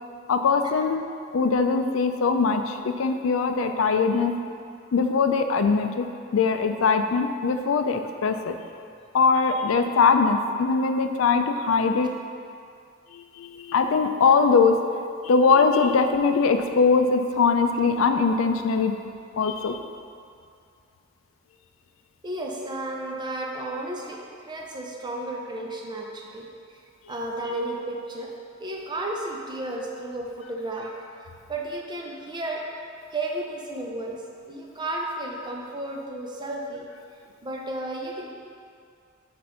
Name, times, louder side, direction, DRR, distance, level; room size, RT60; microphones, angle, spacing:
voice 1, 0.3-1.1 1.3-4.3 4.9-6.1 6.3-8.5 9.1-12.1 13.1-14.8 15.2-18.9 19.4-19.8, left 4 dB, 85° left, 6 dB, 0.4 m, -21 dB
voice 2, 22.2-26.4 27.1-28.3 28.6-31.0 31.5-32.7 33.1-34.2 34.5-36.9 37.4-38.3, right 1 dB, 25° right, -1 dB, 0.7 m, -33 dB
7.5 x 2.6 x 5.7 m, 2.3 s
head